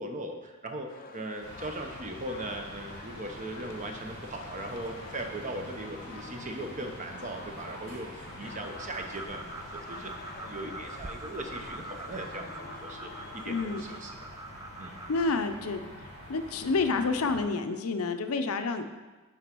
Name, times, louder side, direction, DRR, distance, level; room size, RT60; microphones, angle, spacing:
voice 1, 0.0-14.1 14.8-14.9, right 1 dB, 35° right, 4 dB, 0.8 m, -39 dB
sound 1, 0.9-14.0, left 4 dB, 40° left, 0.5 m, -48 dB
sound 2, 1.4-17.4, equal, 80° right, 2.3 m, -46 dB
sound 3, 8.3-15.4, right 2 dB, 15° right, 0.3 m, -44 dB
voice 2, 13.5-13.8 15.1-15.8 16.3-18.9, left 3 dB, 85° left, 8 dB, 0.6 m, -29 dB
6.1 x 4.9 x 6.0 m, 1.2 s
head